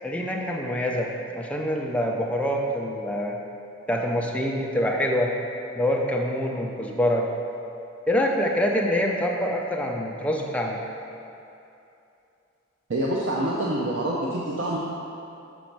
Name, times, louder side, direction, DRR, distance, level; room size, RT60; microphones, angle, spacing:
voice 1, 0.0-3.4 3.9-5.3 5.8-7.3 8.1-10.8, equal, 5° left, -1 dB, 0.5 m, -25 dB
voice 2, 12.9-14.8, right 1 dB, 60° right, -4 dB, 0.6 m, -26 dB
6.2 x 5.3 x 4.5 m, 2.7 s
head